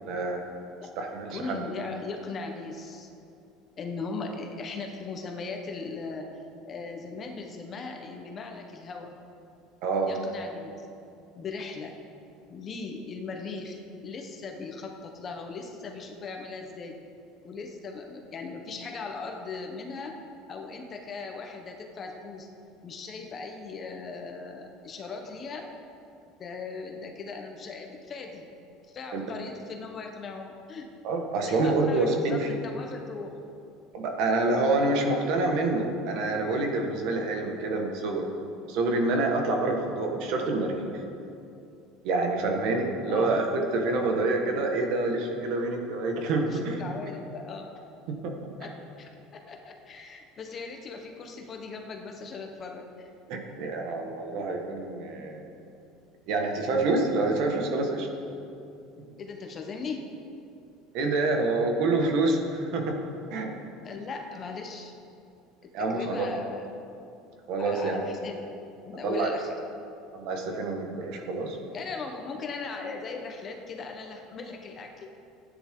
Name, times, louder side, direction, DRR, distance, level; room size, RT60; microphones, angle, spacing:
voice 1, 0.0-0.4 1.0-1.6 9.8-10.1 29.1-29.2 31.0-32.5 33.9-38.3 38.7-40.9 42.0-46.8 48.1-48.5 53.3-55.5 56.3-58.1 60.9-63.0 63.3-63.5 65.7-66.3 67.5-68.0 69.0-69.3 70.1-71.6, right 2 dB, 60° right, 2 dB, 1.6 m, -27 dB
voice 2, 1.3-3.1 3.8-6.3 6.6-9.2 10.0-10.9 11.3-11.9 12.5-16.9 17.4-20.1 20.5-22.5 22.8-25.7 26.4-28.5 28.9-30.9 31.4-33.4 43.1-43.4 46.5-47.9 48.6-53.1 54.4-54.5 59.2-60.0 63.8-64.9 65.6-66.7 67.6-68.5 68.9-69.5 71.7-75.1, left 4 dB, 30° left, 3 dB, 1.1 m, -38 dB
16.0 x 9.8 x 3.8 m, 2.6 s
cardioid pair, 155°, 0 cm